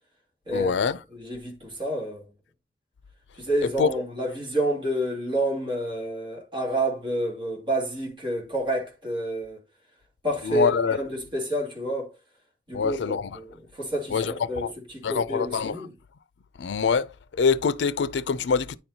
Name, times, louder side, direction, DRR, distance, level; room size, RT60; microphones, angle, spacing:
voice 1, 0.5-1.0 3.8-3.9 10.4-11.0 12.7-13.3 14.1-14.7 15.0-15.8 16.6-17.1 17.4-18.8, left 6 dB, 80° left, 0.4 m, -24 dB
voice 2, 1.1-2.3 3.4-9.6 10.2-12.1 12.7-15.9, right 1 dB, 30° right, 2.3 m, -29 dB
9.6 x 4.4 x 2.7 m
head